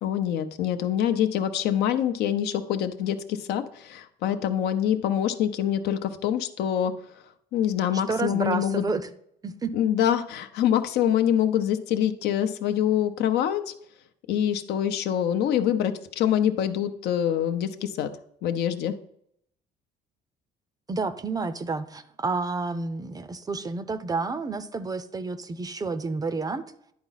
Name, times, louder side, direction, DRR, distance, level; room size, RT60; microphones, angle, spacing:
voice 1, 0.0-7.0 7.5-8.9 9.7-13.7 14.3-18.1 18.4-18.9, left 10 dB, 75° left, 9 dB, 0.7 m, -25 dB
voice 2, 7.9-9.0 9.4-9.7 20.9-26.6, right 3 dB, 20° right, 13 dB, 0.5 m, -30 dB
10.5 x 4.0 x 4.0 m, 0.72 s
cardioid pair, 110°, 17 cm